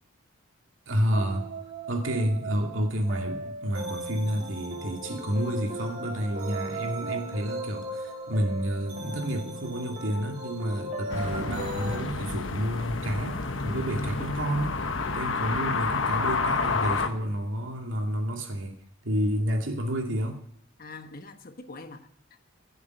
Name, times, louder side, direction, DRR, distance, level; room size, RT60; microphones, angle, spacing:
voice 1, 0.9-1.5 1.9-18.7 19.0-20.4, equal, 75° right, 3 dB, 2.4 m, -30 dB
sound 1, 1.1-12.0, right 1 dB, 40° right, 3.3 m, -37 dB
sound 2, 11.1-17.1, left 4 dB, 70° left, 1.2 m, -29 dB
voice 2, 20.8-22.5, left 3 dB, 45° left, 8 dB, 1.2 m, -44 dB
16.0 x 7.2 x 9.3 m, 0.75 s
head